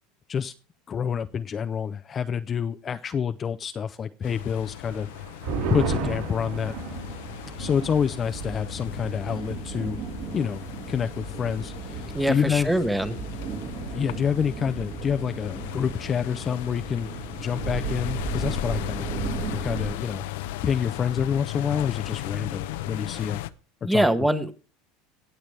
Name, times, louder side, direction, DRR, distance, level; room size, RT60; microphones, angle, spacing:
voice 1, 0.9-5.1 5.7-6.7 7.6-10.0 10.3-10.6 10.9-12.7 13.9-17.1 17.4-20.2 20.6-23.4 23.8-24.1, left 7 dB, 25° left, 12 dB, 0.4 m, -28 dB
sound 1, 4.2-23.5, left 14 dB, 80° left, 0.6 m, -36 dB
sound 2, 4.9-11.8 12.1-12.2 12.6-13.0, right 4 dB, 75° right, 5.0 m, -35 dB
sound 3, 6.2-19.9, right 6 dB, 50° right, 1.8 m, -36 dB
voice 2, 12.1-13.2 23.8-24.5, right 1 dB, 5° right, 11 dB, 1.0 m, -23 dB
17.5 x 6.8 x 3.2 m, 0.35 s
supercardioid pair, 135°, 0 cm